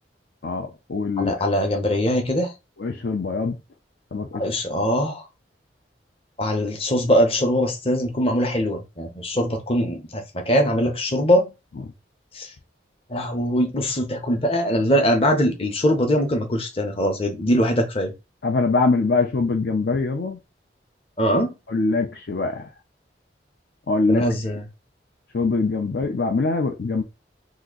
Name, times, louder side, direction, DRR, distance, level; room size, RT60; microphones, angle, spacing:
voice 1, 0.4-1.3 2.8-3.5 4.1-4.4 18.4-20.4 21.7-22.7 23.9-24.3 25.3-27.0, left 3 dB, 65° left, 0.5 m, -23 dB
voice 2, 1.2-2.5 4.3-5.2 6.4-11.5 12.3-12.5 13.1-18.1 21.2-21.5 24.1-24.6, equal, 30° left, 0.8 m, -22 dB
2.9 x 2.5 x 3.7 m
head